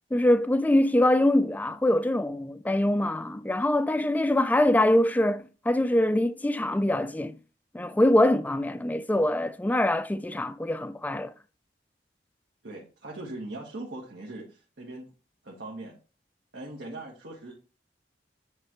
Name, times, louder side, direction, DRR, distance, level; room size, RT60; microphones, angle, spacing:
voice 1, 0.1-7.4 7.7-11.3, left 1 dB, 10° left, 0.3 m, -24 dB
voice 2, 12.6-15.1 15.4-15.9 16.5-17.5, right 2 dB, 85° right, 1.6 m, -40 dB
9.8 x 3.3 x 3.1 m
head